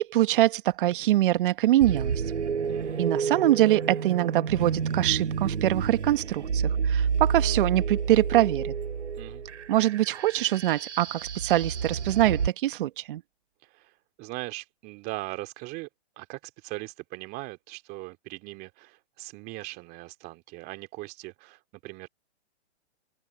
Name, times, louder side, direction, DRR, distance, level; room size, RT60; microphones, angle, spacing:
voice 1, 0.0-2.1 3.0-8.7 9.7-13.2, right 14 dB, 50° right, 1.1 m, -24 dB
sound 1, 1.8-12.5, right 6 dB, 85° right, 5.6 m, -30 dB
voice 2, 2.7-3.2 9.2-9.4 13.6-13.9 14.2-15.9 16.2-22.1, right 22 dB, 25° right, 2.3 m, -40 dB
hypercardioid pair, 140°, 34 cm